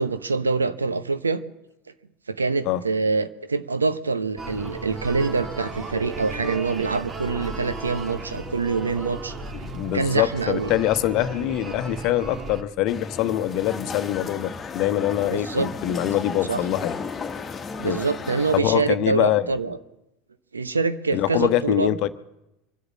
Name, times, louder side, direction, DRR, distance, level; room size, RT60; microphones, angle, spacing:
voice 1, 0.0-1.4 2.3-9.4 9.9-10.7 15.3-15.7 16.5-16.6 17.8-19.8 20.5-21.9, right 4 dB, 85° right, 12 dB, 0.8 m, -25 dB
sound 1, 4.4-12.6, right 3 dB, 30° right, 2.1 m, -35 dB
voice 2, 9.7-17.0 17.8-18.0 18.5-19.5 21.1-22.1, left 13 dB, 50° left, 12 dB, 0.9 m, -24 dB
sound 2, 12.9-18.6, left 5 dB, 25° left, 1.4 m, -34 dB
24.0 x 8.1 x 7.3 m, 0.91 s
figure-of-eight pair, 75°, 0 cm